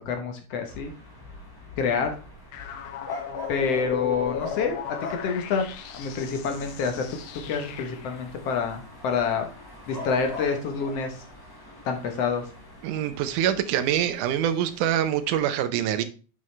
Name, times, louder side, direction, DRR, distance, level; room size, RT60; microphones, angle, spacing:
voice 1, 0.1-0.9 1.8-2.1 3.5-5.7 5.9-7.0 7.5-9.5 9.9-11.2 11.9-12.4, left 5 dB, 65° left, 1.8 m, -27 dB
sound 1, 0.7-15.5, left 2 dB, 10° left, 1.3 m, -43 dB
sound 2, 2.5-8.2, left 8 dB, 85° left, 2.2 m, -37 dB
voice 2, 12.8-16.0, right 10 dB, 85° right, 2.2 m, -25 dB
7.4 x 6.2 x 3.2 m
omnidirectional pair, 3.5 m